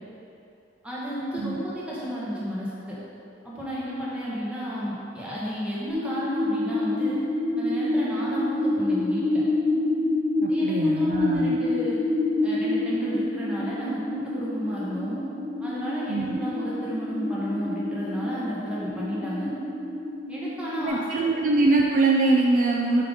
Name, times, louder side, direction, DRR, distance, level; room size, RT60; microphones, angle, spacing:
voice 1, 0.8-3.0 3.4-7.2 7.6-9.4 10.5-12.0 12.4-15.2 15.6-19.5 20.3-21.3, equal, 5° right, -8 dB, 1.3 m, -32 dB
sound 1, 5.9-20.9, left 2 dB, 30° right, 1.3 m, -27 dB
voice 2, 10.4-11.6 16.1-16.4 20.8-23.0, right 3 dB, 45° right, -1 dB, 0.3 m, -23 dB
5.7 x 3.8 x 5.0 m, 2.7 s
head